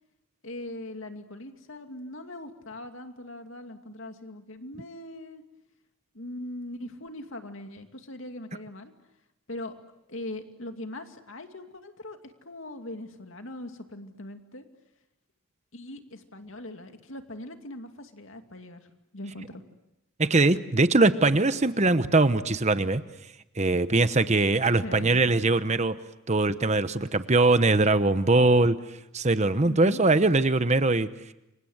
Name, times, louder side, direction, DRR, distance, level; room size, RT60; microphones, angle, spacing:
voice 1, 0.4-5.4 6.1-8.9 9.5-9.7 10.1-14.7 15.7-18.9 19.1-19.6 24.8-25.2 29.6-30.0, left 1 dB, 70° left, 6 dB, 2.5 m, -40 dB
voice 2, 20.2-23.0 23.6-26.0 26.3-28.8 29.1-31.1, right 2 dB, 35° right, 12 dB, 1.0 m, -22 dB
29.5 x 25.0 x 8.0 m, 0.92 s
head